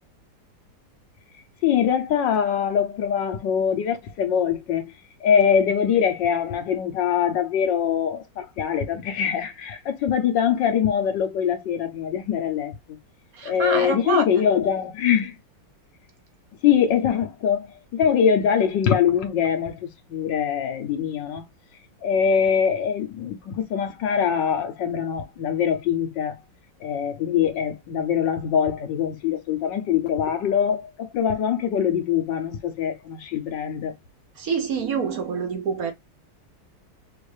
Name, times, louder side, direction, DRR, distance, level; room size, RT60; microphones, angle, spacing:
voice 1, 1.6-4.9 5.2-13.0 13.4-15.3 16.6-21.4 22.0-26.4 26.8-34.0, left 8 dB, 75° left, 1.6 m, -23 dB
voice 2, 13.3-14.3 34.4-35.9, right 5 dB, 60° right, 1.2 m, -26 dB
5.5 x 2.6 x 3.2 m
omnidirectional pair, 2.0 m